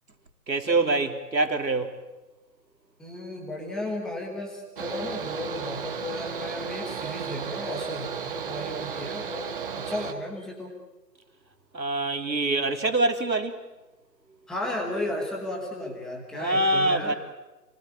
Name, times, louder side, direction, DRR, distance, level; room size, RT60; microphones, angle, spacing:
voice 1, 0.5-2.0 11.7-13.6 16.3-17.1, right 2 dB, 90° right, 3.7 m, -25 dB
voice 2, 3.0-10.8 14.5-17.1, left 1 dB, ahead, 1.3 m, -34 dB
Mechanical fan, 4.8-10.1, right 6 dB, 30° right, 2.0 m, -34 dB
29.5 x 20.0 x 9.2 m
hypercardioid pair, 160°, 50 cm